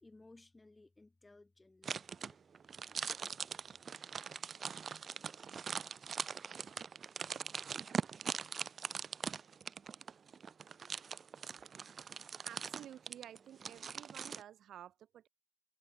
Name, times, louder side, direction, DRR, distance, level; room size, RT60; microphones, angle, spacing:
voice 1, 0.0-2.4, left 2 dB, 15° left, 3.4 m, -60 dB
sound 1, 1.8-14.4, right 6 dB, 40° right, 0.4 m, -42 dB
voice 2, 11.7-15.3, right 11 dB, 65° right, 1.0 m, -53 dB
supercardioid pair, 85°, 0 cm